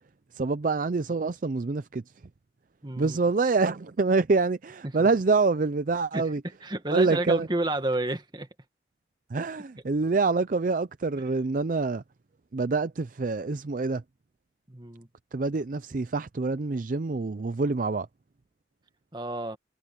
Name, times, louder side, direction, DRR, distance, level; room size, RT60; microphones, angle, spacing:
voice 1, 0.3-2.0 3.0-6.4 6.9-7.5 9.3-12.0 12.5-14.0 15.3-18.1, right 3 dB, 45° right, 0.5 m, -26 dB
voice 2, 2.8-3.2 4.8-5.1 6.1-6.3 6.6-8.5 14.7-15.1 19.1-19.6, right 2 dB, 25° right, 1.6 m, -30 dB
head